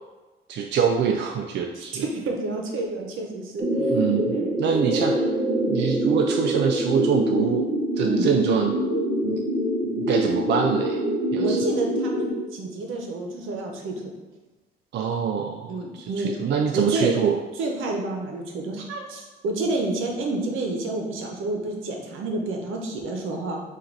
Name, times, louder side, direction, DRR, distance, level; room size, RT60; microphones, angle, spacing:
voice 1, 0.5-2.1 3.9-5.3 5.7-7.7 8.0-8.8 9.2-9.5 9.8-11.0 11.3-11.6 14.9-17.4, right 7 dB, 60° right, 3 dB, 0.4 m, -25 dB
voice 2, 1.8-3.9 4.3-4.5 8.0-8.3 11.4-14.1 15.7-16.3 16.7-17.2 17.6-23.6, right 2 dB, 85° right, 1 dB, 0.8 m, -29 dB
sound 1, 3.6-12.3, equal, 25° right, 1.0 m, -25 dB
3.9 x 2.5 x 4.5 m, 1.2 s
cardioid pair, 90°, 20 cm